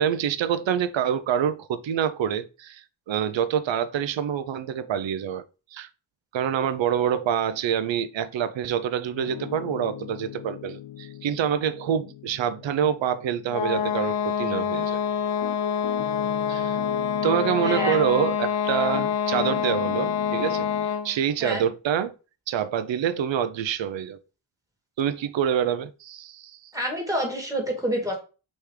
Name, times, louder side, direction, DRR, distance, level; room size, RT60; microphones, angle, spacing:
voice 1, 0.0-5.4 5.7-5.9 6.3-15.0 16.5-16.8 17.2-22.1 22.5-24.2 25.0-26.7, right 9 dB, 65° right, 0.6 m, -26 dB
Piano, 9.1-18.5 18.9-20.9, left 11 dB, 60° left, 0.5 m, -39 dB
sound 1, 13.5-21.2, left 8 dB, 80° left, 0.9 m, -26 dB
voice 2, 17.6-18.0 21.4-21.6 26.7-28.2, equal, 5° right, 1.9 m, -27 dB
3.4 x 3.2 x 4.7 m
cardioid pair, 65°, 50 cm